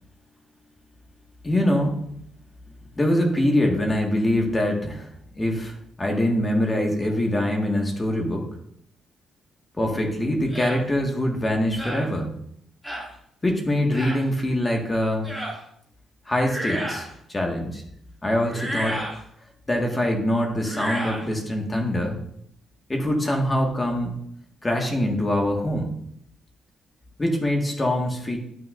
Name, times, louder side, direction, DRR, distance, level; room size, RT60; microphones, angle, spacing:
voice 1, 1.4-2.1 3.0-5.1 5.3-8.5 9.8-12.3 13.4-15.3 16.3-17.8 18.2-19.0 19.7-22.2 22.9-24.1 24.6-25.9 27.2-28.4, left 1 dB, 20° left, 1 dB, 1.8 m, -24 dB
sound 1, 10.5-10.8 11.8-12.1 12.8-13.1 13.9-14.2 15.2-15.6 16.4-17.1 18.5-19.2 20.6-21.3, right 1 dB, ahead, 2.5 m, -31 dB
12.0 x 6.4 x 2.6 m, 0.70 s
cardioid pair, 90°, 0 cm